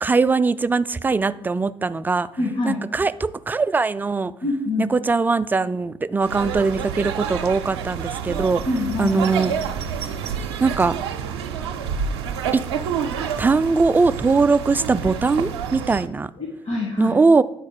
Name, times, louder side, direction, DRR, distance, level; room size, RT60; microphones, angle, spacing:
voice 1, 0.0-2.3 2.6-4.3 4.8-8.6 9.0-9.5 10.6-10.9 13.4-16.3 17.0-17.4, right 4 dB, 15° right, 14 dB, 0.3 m, -20 dB
voice 2, 2.4-2.8 4.4-4.9 8.6-9.2 16.3-17.1, left 3 dB, 50° left, -1 dB, 1.5 m, -25 dB
sound 1, 6.2-16.1, right 7 dB, 80° right, 0.5 m, -28 dB
9.4 x 4.1 x 5.0 m, 0.83 s
figure-of-eight pair, 50°, 14 cm